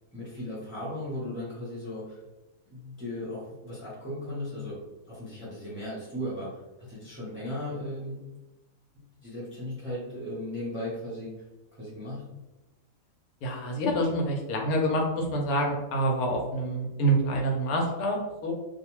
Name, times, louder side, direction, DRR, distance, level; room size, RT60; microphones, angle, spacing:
voice 1, 0.1-2.2 2.7-4.8 5.1-8.2 9.2-11.3 11.8-12.2, left 1 dB, 10° right, -8 dB, 0.6 m, -36 dB
voice 2, 13.4-18.5, right 1 dB, 85° left, 0 dB, 1.1 m, -27 dB
2.5 x 2.3 x 3.0 m, 1.0 s
omnidirectional pair, 1.5 m